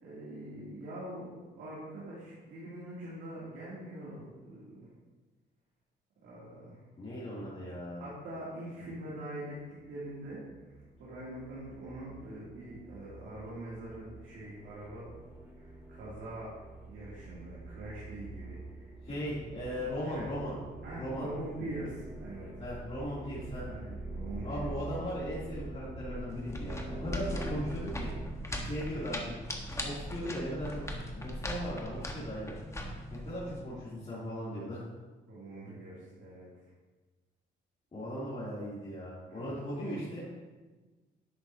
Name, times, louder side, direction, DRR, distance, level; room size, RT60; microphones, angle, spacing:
voice 1, 0.0-4.9 6.2-6.8 8.0-10.4 10.6-10.7 11.0-15.2 15.5-16.5 16.8-19.3 20.0-20.4 20.8-22.6 23.6-24.7 26.8-27.3 28.5-28.8 33.4-33.5 35.3-36.7 39.3-39.6 39.8-40.0, right 1 dB, 75° right, -8 dB, 2.9 m, -44 dB
voice 2, 7.0-8.0 19.0-20.5 21.0-21.3 22.6-23.6 24.4-28.1 28.6-29.3 29.8-30.8 31.1-32.5 33.1-34.8 37.9-40.2, equal, 30° left, -10 dB, 3.0 m, -38 dB
sound 1, 10.0-28.3, right 2 dB, 10° right, 2.3 m, -45 dB
sound 2, 26.3-33.6, equal, 15° left, 1.3 m, -39 dB
10.5 x 7.9 x 2.8 m, 1.3 s
cardioid pair, 95°, 20 cm